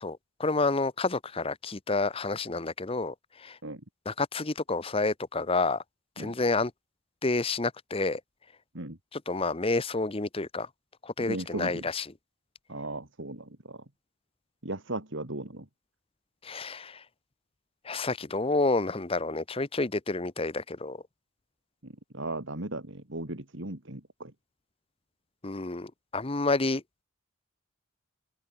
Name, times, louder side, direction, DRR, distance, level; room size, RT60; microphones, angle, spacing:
voice 1, 0.0-3.6 4.1-5.8 6.2-6.7 7.2-8.2 9.1-10.7 11.0-12.0 16.4-17.0 17.8-21.0 25.4-26.8, left 3 dB, 25° left, 0.8 m, -29 dB
voice 2, 11.3-11.9 12.7-13.8 14.6-15.7 21.8-24.3, right 2 dB, 55° right, 2.4 m, -37 dB
open air
head